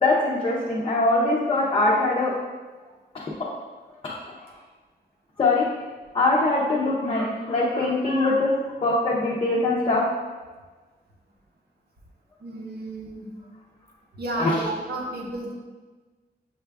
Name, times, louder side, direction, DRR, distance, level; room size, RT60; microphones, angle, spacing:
voice 1, 0.0-2.3 3.1-3.3 4.0-4.2 5.4-5.6 6.1-8.5 8.8-10.0 14.4-14.6, left 2 dB, 35° left, -6 dB, 0.6 m, -22 dB
voice 2, 12.4-13.3 14.1-15.5, right 2 dB, 70° right, -2 dB, 1.0 m, -32 dB
6.5 x 2.3 x 3.3 m, 1.3 s
wide cardioid pair, 165°, 17 cm